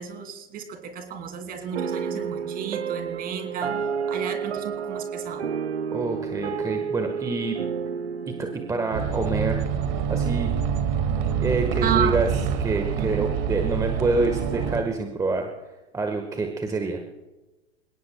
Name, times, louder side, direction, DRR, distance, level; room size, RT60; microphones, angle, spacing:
voice 1, 0.0-3.7 4.1-5.5 11.8-12.2 13.0-13.3, right 8 dB, 25° right, 6 dB, 2.6 m, -32 dB
sound 1, 1.7-10.3, right 6 dB, 75° right, 0.8 m, -31 dB
voice 2, 5.9-7.6 8.4-9.6 10.1-10.5 11.4-12.3 12.6-15.5 15.9-17.0, right 3 dB, 10° right, 4 dB, 1.4 m, -26 dB
sound 2, 8.9-14.8, right 7 dB, 45° right, 2.0 m, -26 dB
28.0 x 18.0 x 2.3 m, 1.1 s
figure-of-eight pair, 105°, 32 cm